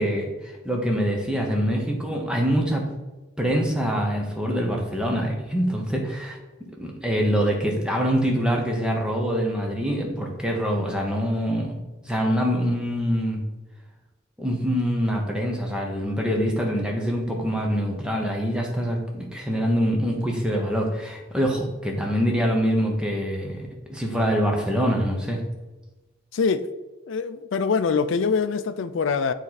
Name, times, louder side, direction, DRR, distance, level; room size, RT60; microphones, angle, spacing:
voice 1, 0.0-2.9 3.4-6.4 6.8-11.8 12.0-13.4 14.4-25.4, equal, 5° right, 0 dB, 1.0 m, -25 dB
voice 2, 26.3-26.7 27.1-29.3, left 5 dB, 75° left, 11 dB, 0.4 m, -24 dB
7.2 x 4.3 x 4.1 m, 1.1 s
head